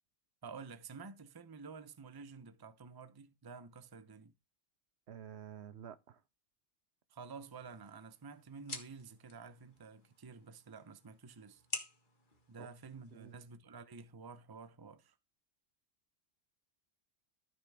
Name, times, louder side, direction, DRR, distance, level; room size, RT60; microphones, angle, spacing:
voice 1, 0.4-4.3 7.1-11.6 12.5-15.1, right 5 dB, 25° right, 0.7 m, -51 dB
voice 2, 5.1-6.2 12.6-12.7 13.1-13.4, right 9 dB, 70° right, 1.0 m, -50 dB
sound 1, 7.4-13.4, left 3 dB, 45° left, 1.8 m, -50 dB
13.5 x 5.9 x 3.5 m
omnidirectional pair, 1.2 m